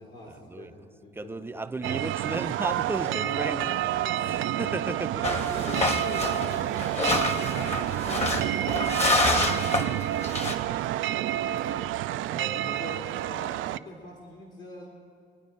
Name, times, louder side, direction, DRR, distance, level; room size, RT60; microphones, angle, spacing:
voice 1, 0.0-1.9 3.0-4.9 5.5-11.8 12.2-14.9, left 1 dB, 65° left, 3.4 m, -43 dB
voice 2, 1.1-3.7 4.3-5.4, right 2 dB, 10° right, 0.5 m, -34 dB
sound 1, 1.8-13.8, right 13 dB, 80° right, 0.4 m, -29 dB
sound 2, 5.2-10.6, left 2 dB, 35° left, 1.6 m, -27 dB
24.0 x 9.3 x 5.3 m
cardioid pair, 90°, 20 cm